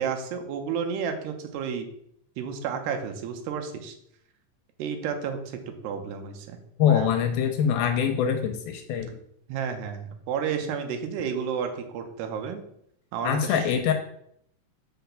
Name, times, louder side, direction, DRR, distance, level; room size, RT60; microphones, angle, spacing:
voice 1, 0.0-1.9 2.4-4.0 4.8-5.4 5.8-7.1 9.5-12.6 13.1-13.6, right 7 dB, 85° right, 6 dB, 3.1 m, -31 dB
voice 2, 6.8-9.1 13.2-13.9, left 8 dB, 80° left, 6 dB, 2.4 m, -24 dB
6.0 x 5.6 x 6.9 m, 0.71 s
omnidirectional pair, 4.7 m